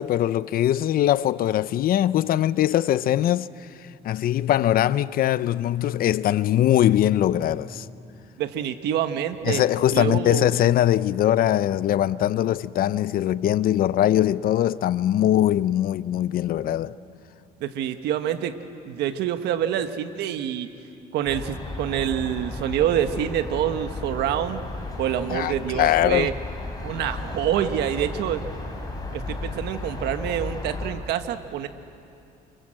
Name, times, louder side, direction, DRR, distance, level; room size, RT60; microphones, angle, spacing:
voice 1, 0.0-3.5 4.0-7.9 9.4-16.9 25.3-26.3, left 12 dB, 60° left, 0.6 m, -21 dB
voice 2, 8.4-9.6 9.9-10.7 17.6-18.6 18.8-20.7 21.1-24.7 25.0-26.3 26.8-28.4 29.1-31.7, right 10 dB, 80° right, 1.4 m, -26 dB
sound 1, 21.2-30.9, left 2 dB, 20° left, 5.1 m, -34 dB
28.5 x 27.0 x 7.6 m
cardioid pair, 110°, 17 cm